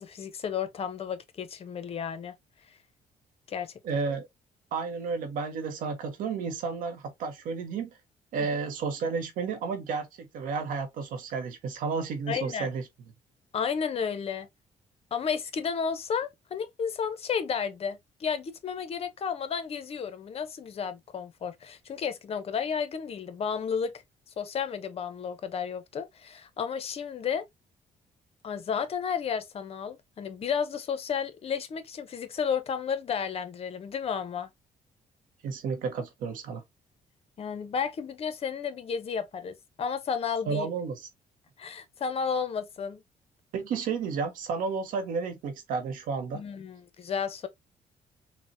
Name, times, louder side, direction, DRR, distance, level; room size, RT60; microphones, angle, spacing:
voice 1, 0.0-2.3 3.5-3.7 12.3-12.7 13.5-14.5 15.1-23.9 24.4-27.4 28.4-34.5 37.4-40.7 41.6-43.0 46.3-47.5, left 6 dB, 45° left, 0.6 m, -32 dB
voice 2, 3.8-4.3 4.7-8.0 8.3-10.1 10.3-12.8 35.4-36.6 40.5-41.1 43.5-46.4, right 5 dB, 80° right, 0.7 m, -32 dB
3.9 x 2.1 x 2.5 m
cardioid pair, 105°, 14 cm